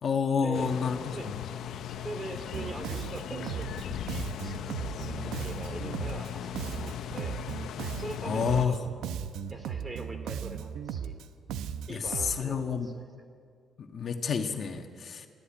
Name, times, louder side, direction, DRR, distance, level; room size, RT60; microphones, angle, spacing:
voice 1, 0.0-1.3 8.2-8.7 11.9-12.0 12.3-12.9 13.8-15.3, left 6 dB, 50° left, 5 dB, 1.6 m, -29 dB
sound 1, 0.5-8.7, left 9 dB, 75° left, 0.8 m, -38 dB
voice 2, 2.0-7.4 7.9-9.0 9.5-11.2 11.9-13.3, right 2 dB, 25° right, 7 dB, 3.1 m, -42 dB
Bass guitar, 2.5-12.4, right 8 dB, 90° right, 0.9 m, -37 dB
24.5 x 15.5 x 8.8 m, 2.1 s
cardioid pair, 90°, 0 cm